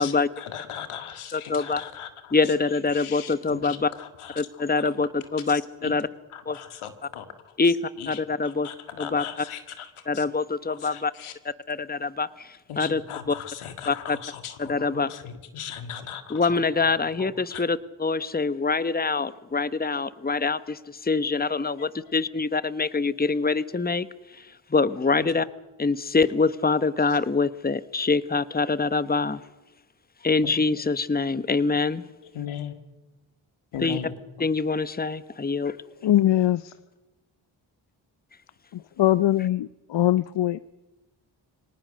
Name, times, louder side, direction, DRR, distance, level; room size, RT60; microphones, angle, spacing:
voice 1, 0.0-2.5 2.9-4.8 5.8-5.9 6.3-7.7 8.0-10.2 10.7-11.4 12.7-16.6 17.2-17.6 25.2-25.3 27.1-27.2 30.4-30.5 32.2-32.8 33.7-34.1, left 8 dB, 90° left, 9 dB, 2.1 m, -39 dB
voice 2, 1.3-1.8 2.3-3.9 4.4-6.1 6.5-6.6 7.6-8.7 9.0-9.2 10.1-11.1 11.7-13.0 13.3-13.4 13.9-14.2 14.6-15.1 16.3-25.5 25.8-29.4 30.2-32.0 33.8-34.0 34.4-35.8, left 4 dB, 20° left, 16 dB, 1.1 m, -25 dB
voice 3, 36.0-36.7 38.7-40.6, left 13 dB, 60° left, 18 dB, 0.7 m, -22 dB
24.5 x 18.5 x 6.6 m, 1.0 s
supercardioid pair, 45°, 48 cm